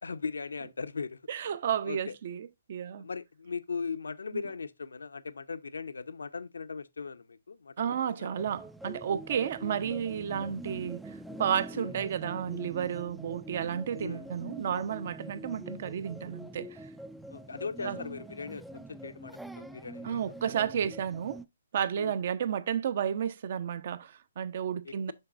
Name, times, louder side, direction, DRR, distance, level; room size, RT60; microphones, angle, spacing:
voice 1, 0.0-1.2 1.8-2.1 3.0-8.4 11.7-11.9 14.0-14.3 17.3-20.3 22.0-22.2 24.8-25.1, left 5 dB, 75° left, 0.6 m, -39 dB
voice 2, 1.3-3.1 4.3-4.4 7.8-11.1 11.4-16.8 17.8-18.0 20.0-21.4 21.7-25.1, right 8 dB, 50° right, 0.7 m, -32 dB
sound 1, 8.4-21.5, right 1 dB, 5° right, 0.3 m, -45 dB
7.5 x 5.9 x 2.4 m
figure-of-eight pair, 140°, 0 cm